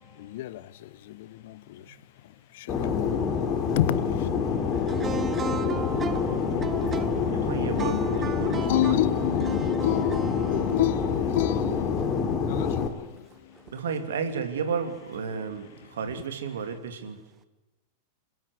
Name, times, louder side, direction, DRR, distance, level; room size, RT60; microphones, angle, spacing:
voice 1, 0.1-2.0 2.5-4.7 7.7-13.6, left 14 dB, 55° left, 0.8 m, -30 dB
Fixed-wing aircraft airplane, 2.7-12.9, left 6 dB, 25° left, 3.1 m, -27 dB
voice 2, 4.8-8.9 9.5-10.7, right 6 dB, 20° right, 1.2 m, -36 dB
voice 3, 7.3-9.1 13.7-17.2, right 6 dB, 65° right, 2.7 m, -32 dB
28.0 x 12.5 x 8.5 m
figure-of-eight pair, 90°, 0 cm